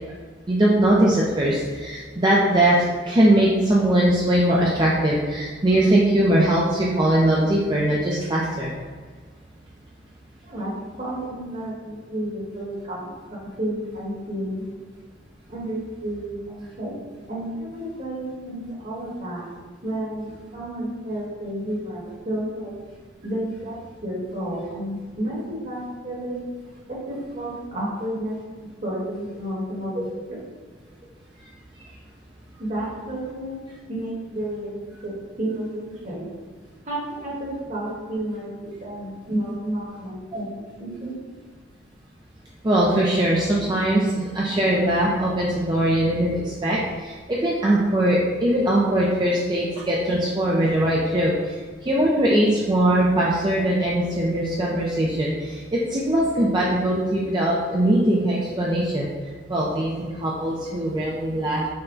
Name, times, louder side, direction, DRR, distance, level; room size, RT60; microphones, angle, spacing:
voice 1, 0.5-2.8 3.1-8.7 40.3-40.4 42.6-51.3 51.8-59.1 59.5-61.6, right 1 dB, 25° right, -5 dB, 0.5 m, -21 dB
voice 2, 10.4-10.7 11.0-14.6 15.5-17.0 17.3-19.5 19.8-22.7 23.2-23.8 24.0-26.4 26.9-30.4 32.6-33.6 33.9-35.1 35.4-36.2 36.8-41.2, right 1 dB, 45° right, -5 dB, 1.4 m, -31 dB
5.6 x 2.2 x 3.8 m, 1.5 s
head